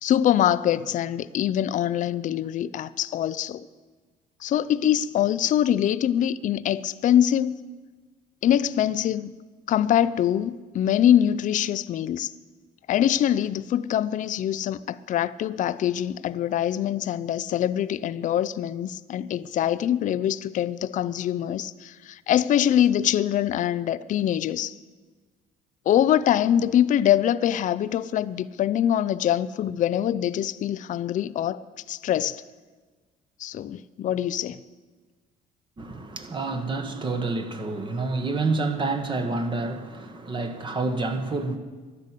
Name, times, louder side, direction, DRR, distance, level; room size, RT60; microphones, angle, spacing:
voice 1, 0.0-3.7 4.4-7.6 8.4-9.3 9.7-12.3 12.9-24.8 25.9-31.6 31.9-32.4 33.4-34.6, left 10 dB, 50° left, 0.5 m, -24 dB
voice 2, 35.8-41.6, right 3 dB, 30° right, 1.5 m, -28 dB
12.0 x 10.5 x 8.3 m
cardioid pair, 110°, 17 cm